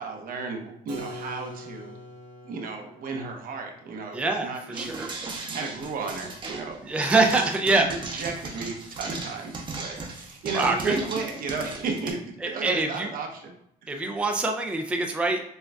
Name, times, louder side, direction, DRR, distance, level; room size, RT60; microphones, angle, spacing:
voice 1, 0.0-1.9 2.4-5.1 5.5-6.8 7.1-7.4 7.7-13.5 13.8-14.2, right 4 dB, 60° right, 3 dB, 0.8 m, -34 dB
Keyboard (musical), 0.9-6.5, equal, 85° right, 1.0 m, -45 dB
voice 2, 4.1-4.5 4.8-5.1 6.9-7.9 10.5-11.0 12.4-13.1 13.9-15.4, right 3 dB, 5° right, 3 dB, 0.4 m, -24 dB
sound 1, 4.7-12.1, right 3 dB, 30° right, 0.7 m, -36 dB
6.3 x 2.3 x 2.3 m, 0.79 s
cardioid pair, 110°, 17 cm